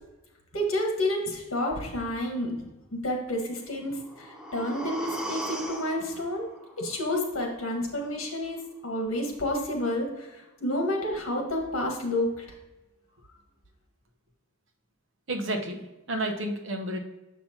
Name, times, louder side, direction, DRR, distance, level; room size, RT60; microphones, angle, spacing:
voice 1, 0.5-6.5 6.8-12.4, left 1 dB, 70° left, 1 dB, 1.6 m, -30 dB
sound 1, 3.8-7.8 8.1-8.2, right 1 dB, 5° right, 0.6 m, -39 dB
voice 2, 15.3-17.0, right 1 dB, 60° right, 3 dB, 1.0 m, -31 dB
7.3 x 5.7 x 2.9 m, 1.0 s
head